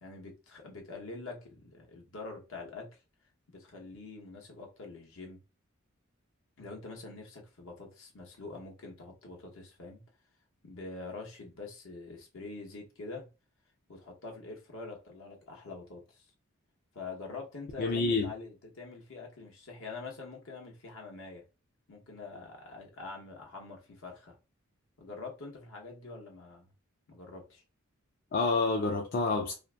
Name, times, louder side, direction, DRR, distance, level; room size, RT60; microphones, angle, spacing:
voice 1, 0.0-2.9 3.5-5.4 6.6-10.0 10.6-13.3 13.9-16.2 16.9-21.4 21.9-24.4 25.0-26.7 27.1-27.6, left 3 dB, 65° left, 0.8 m, -45 dB
voice 2, 17.8-18.3 28.3-29.5, left 3 dB, 45° left, 0.3 m, -28 dB
2.6 x 2.4 x 2.2 m
head